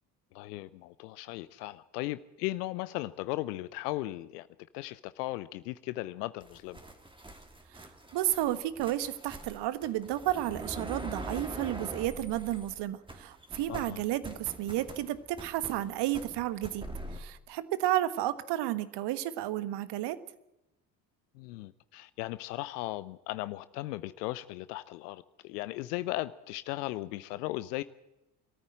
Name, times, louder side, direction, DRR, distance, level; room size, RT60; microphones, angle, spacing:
voice 1, 0.3-4.5 4.7-6.8 13.7-14.0 21.3-27.8, left 17 dB, 70° left, 0.8 m, -37 dB
sound 1, 6.4-12.8 13.1-17.2, right 1 dB, 10° right, 2.7 m, -44 dB
voice 2, 8.1-20.2, right 14 dB, 55° right, 1.5 m, -32 dB
22.5 x 14.0 x 8.8 m
figure-of-eight pair, 60°, 50 cm